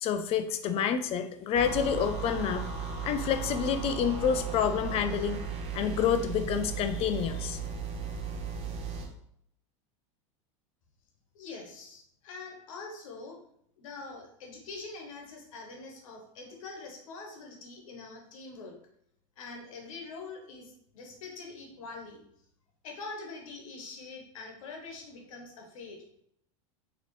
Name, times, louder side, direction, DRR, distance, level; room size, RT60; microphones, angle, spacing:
voice 1, 0.0-2.6 3.0-5.4 5.7-7.6, left 7 dB, 35° left, 9 dB, 0.4 m, -28 dB
sound 1, 1.5-9.1, right 5 dB, 45° right, 0.7 m, -36 dB
voice 2, 11.3-13.4 13.8-18.8 19.4-22.2 22.8-26.0, left 3 dB, 85° left, 2 dB, 1.0 m, -44 dB
4.0 x 2.9 x 3.1 m, 0.72 s
supercardioid pair, 120°, 17 cm